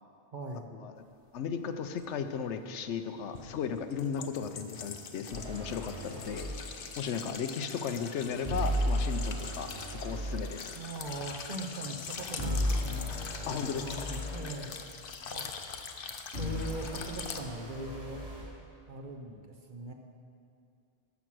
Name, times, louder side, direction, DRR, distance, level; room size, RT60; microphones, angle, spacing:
voice 1, 0.3-0.7 10.7-13.5 13.8-14.8 15.3-15.7 16.4-18.2 18.9-19.9, right 2 dB, 45° right, 2 dB, 1.0 m, -41 dB
voice 2, 1.3-6.5 7.0-9.7 10.0-10.8 13.5-14.1, left 6 dB, 85° left, 9 dB, 1.0 m, -35 dB
sound 1, 2.0-2.1 3.3-17.4, left 6 dB, 55° left, 0.8 m, -43 dB
sound 2, 5.3-6.6 8.4-10.5 12.4-14.5 16.3-18.5, equal, 70° right, 2.8 m, -34 dB
13.0 x 6.2 x 6.1 m, 2.5 s
omnidirectional pair, 1.2 m